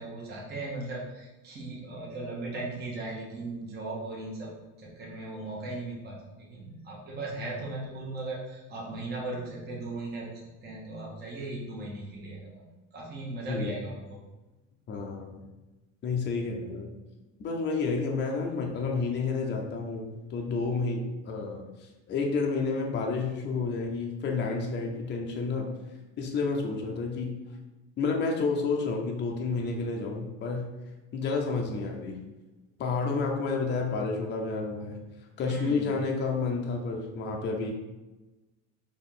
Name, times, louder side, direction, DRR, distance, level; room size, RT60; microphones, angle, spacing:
voice 1, 0.0-4.5 4.8-10.3 10.6-14.2 35.4-35.9, right 2 dB, 30° right, -4 dB, 1.0 m, -37 dB
voice 2, 14.9-15.4 16.0-16.9 17.4-25.7 26.2-27.4 28.0-30.7 31.1-32.2 32.8-35.0 35.4-37.7, left 4 dB, 30° left, 1 dB, 0.6 m, -30 dB
4.3 x 3.0 x 3.7 m, 1.1 s
cardioid pair, 125°, 34 cm